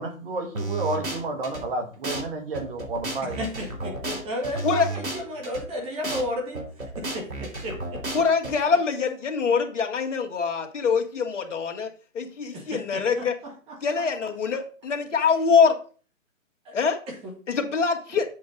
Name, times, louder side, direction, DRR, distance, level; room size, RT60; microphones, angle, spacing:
voice 1, 0.0-3.4, right 2 dB, 40° right, 1.8 m, -31 dB
sound 1, 0.6-1.6 2.0-2.2 2.5-5.6 6.0-6.2 6.5-8.5, right 2 dB, 80° right, 3.8 m, -32 dB
voice 2, 3.2-6.6 7.0-8.2 12.5-13.3 13.7-13.8 16.6-16.7 17.1-17.3, equal, 15° right, 1.5 m, -33 dB
voice 3, 8.1-11.9 12.1-13.3 13.8-15.7 16.7-17.0 17.5-18.3, left 5 dB, 60° left, 2.0 m, -24 dB
7.7 x 7.3 x 3.9 m
hypercardioid pair, 150°, 41 cm